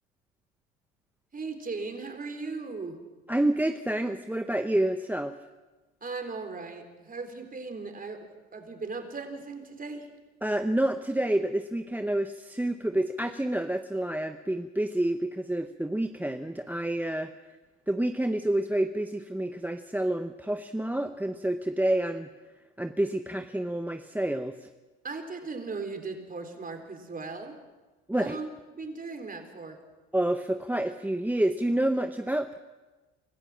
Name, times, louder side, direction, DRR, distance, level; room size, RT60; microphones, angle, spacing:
voice 1, 1.3-3.0 6.0-10.1 25.0-27.6 28.2-28.5 28.7-29.8, right 4 dB, 25° right, 6 dB, 3.7 m, -38 dB
voice 2, 3.3-5.3 10.4-17.3 17.9-22.3 22.8-24.7 28.1-28.4 30.1-32.6, right 1 dB, 5° right, 9 dB, 0.9 m, -28 dB
25.5 x 14.0 x 7.4 m, 1.2 s
hypercardioid pair, 70°, 32 cm